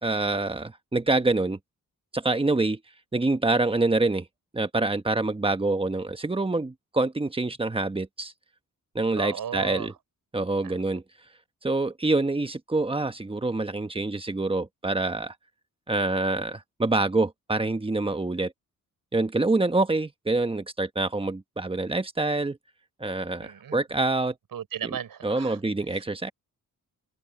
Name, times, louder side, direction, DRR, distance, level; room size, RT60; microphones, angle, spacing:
voice 1, 0.0-1.6 2.1-2.8 3.1-4.3 4.5-8.3 8.9-9.9 10.3-11.0 11.6-15.3 15.9-18.5 19.1-22.6 23.0-24.3 24.8-24.9 25.2-26.3, right 2 dB, 15° right, 1.2 m, -26 dB
voice 2, 9.1-9.9 10.6-10.8 23.4-23.8 24.5-25.6 25.9-26.0, right 9 dB, 80° right, 6.7 m, -35 dB
open air
wide cardioid pair, 125°, 34 cm